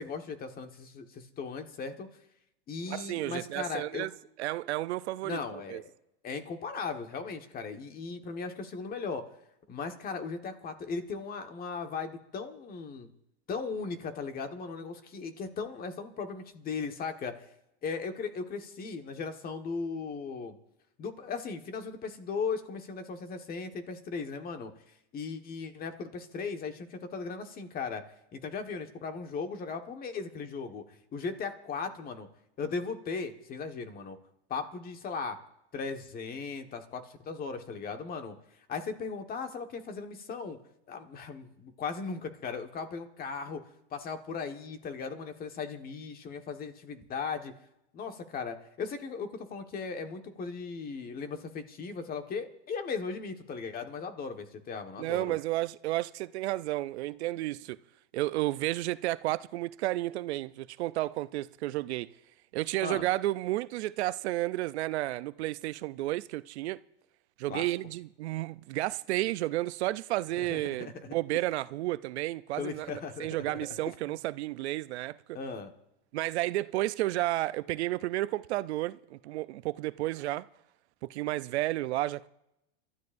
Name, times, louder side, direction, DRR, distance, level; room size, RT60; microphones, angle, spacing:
voice 1, 0.0-2.1 2.7-4.1 5.2-5.8 6.2-9.2 9.7-13.1 13.5-17.4 17.8-20.6 21.0-24.7 25.1-28.0 28.3-32.3 32.6-34.2 34.5-35.4 35.7-38.4 38.7-40.6 40.9-43.6 43.9-47.5 47.9-55.4 62.8-63.0 67.5-67.6 70.4-71.1 72.6-73.6 75.3-75.7, left 5 dB, 25° left, 1.4 m, -37 dB
voice 2, 2.9-4.1 4.4-5.8 55.0-57.8 58.1-62.1 62.5-66.8 67.4-75.4 76.1-80.5 81.0-82.3, right 17 dB, 80° right, 0.6 m, -32 dB
29.0 x 13.0 x 2.6 m
supercardioid pair, 135°, 33 cm